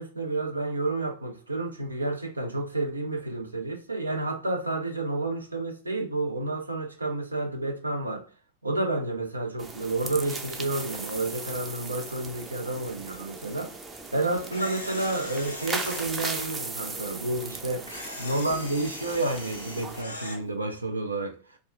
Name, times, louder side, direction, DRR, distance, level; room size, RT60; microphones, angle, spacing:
voice 1, 0.0-8.3 8.6-13.7 14.1-17.9 18.2-21.6, right 2 dB, 80° right, 0.4 m, -30 dB
sound 1, 9.6-20.0, right 3 dB, 15° right, 0.4 m, -38 dB
Camera, 14.5-16.5 17.9-20.4, left 2 dB, 80° left, 0.6 m, -40 dB
2.2 x 2.2 x 3.7 m
figure-of-eight pair, 90°, 0 cm